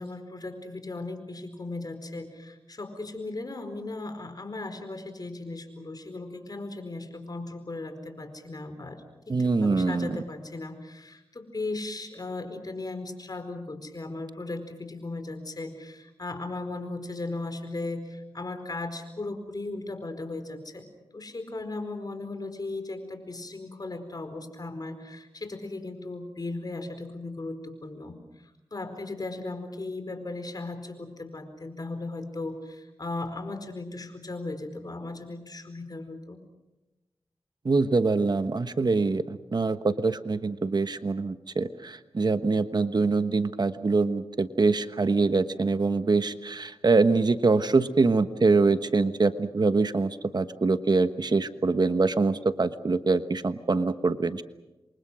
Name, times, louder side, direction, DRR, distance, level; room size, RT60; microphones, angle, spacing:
voice 1, 0.0-20.9 21.1-28.2 28.7-36.4, left 2 dB, 45° left, 9 dB, 4.6 m, -37 dB
voice 2, 9.3-10.2 37.6-39.2 39.5-54.4, right 3 dB, 50° right, 11 dB, 1.2 m, -24 dB
28.0 x 24.0 x 6.3 m, 1.0 s
cardioid pair, 60°, 9 cm